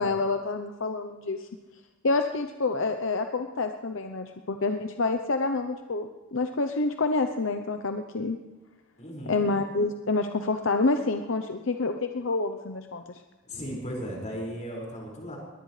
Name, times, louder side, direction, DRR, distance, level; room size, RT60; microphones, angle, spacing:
voice 1, 0.0-1.5 2.0-8.4 9.3-13.0, left 3 dB, 70° left, 6 dB, 0.8 m, -28 dB
voice 2, 9.0-9.5 13.5-15.4, equal, 35° left, -2 dB, 5.5 m, -36 dB
22.0 x 18.5 x 3.3 m, 1.2 s
head